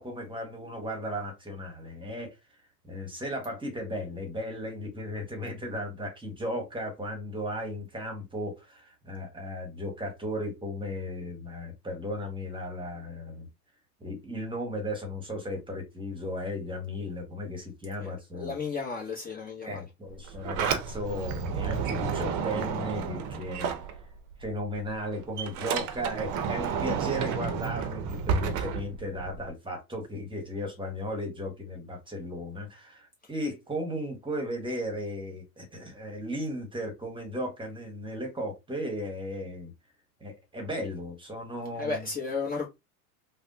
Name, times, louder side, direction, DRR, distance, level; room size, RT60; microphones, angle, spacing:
voice 1, 0.0-2.3 2.8-13.5 14.0-18.5 19.6-23.7 24.4-39.7 40.2-42.0, equal, 10° right, 1.2 m, -35 dB
voice 2, 18.0-19.8 41.8-42.7, left 4 dB, 20° left, 0.9 m, -33 dB
Sliding door, 20.1-24.4 24.7-29.5, right 6 dB, 40° right, 0.7 m, -31 dB
3.3 x 2.2 x 2.7 m
hypercardioid pair, 110°, 46 cm